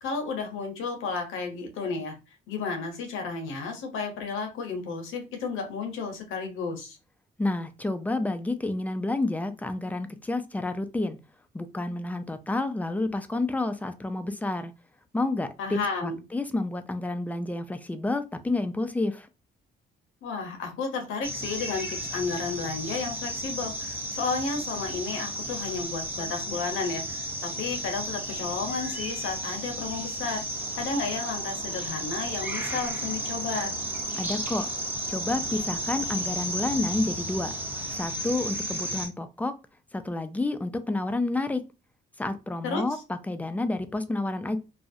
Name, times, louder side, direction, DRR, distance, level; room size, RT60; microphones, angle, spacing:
voice 1, 0.0-2.1 2.5-7.0 15.6-16.2 20.2-30.4 30.8-33.8 42.6-42.8, left 4 dB, 85° left, 0.8 m, -32 dB
voice 2, 7.4-11.2 11.5-14.7 15.1-19.3 34.2-34.7 35.1-37.5 37.9-39.5 39.9-41.6 42.2-44.6, left 2 dB, 10° left, 0.3 m, -29 dB
sound 1, 21.2-39.1, right 1 dB, 10° right, 0.7 m, -33 dB
sound 2, 30.5-38.1, right 3 dB, 75° right, 0.6 m, -46 dB
2.4 x 2.0 x 2.6 m
cardioid pair, 90°, 20 cm